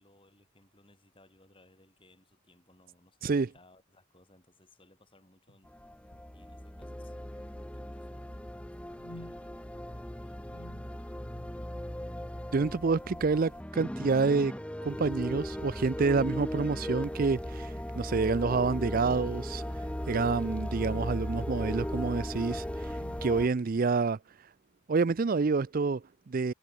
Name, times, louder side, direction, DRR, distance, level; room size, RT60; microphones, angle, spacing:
voice 1, 0.0-5.7 6.3-10.7, left 1 dB, 25° left, 7.0 m, -63 dB
sound 1, 5.5-5.7 6.1-6.3 6.8-7.3 8.9-9.5 10.4-11.7 12.0-12.3 13.0-13.4 13.8-14.1 15.0-15.6 16.8-17.2 17.7-17.8 18.7-21.3 22.2-22.4 22.9-23.9, left 1 dB, 85° left, 2.8 m, -55 dB
sound 2, 5.7-23.5, equal, 5° left, 0.7 m, -37 dB
voice 2, 12.5-14.5 14.8-19.6 20.1-24.2 24.9-26.5, right 4 dB, 40° right, 0.4 m, -28 dB
head